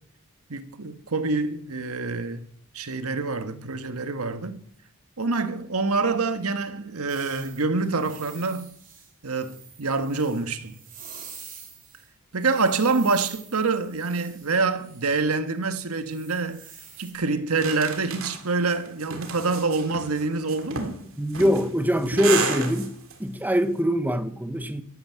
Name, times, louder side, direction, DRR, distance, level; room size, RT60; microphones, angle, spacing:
voice 1, 0.5-2.5 2.7-4.6 5.2-8.7 9.2-10.8 12.3-16.6 17.0-21.0, right 3 dB, 90° right, 1.4 m, -26 dB
sound 1, 7.1-12.1 12.4-15.3 16.1-17.1, right 7 dB, 40° right, 4.1 m, -46 dB
sound 2, 17.6-23.2, right 4 dB, 65° right, 2.5 m, -32 dB
voice 2, 21.2-22.9 23.2-24.8, equal, 10° right, 0.9 m, -23 dB
12.5 x 12.5 x 7.5 m
head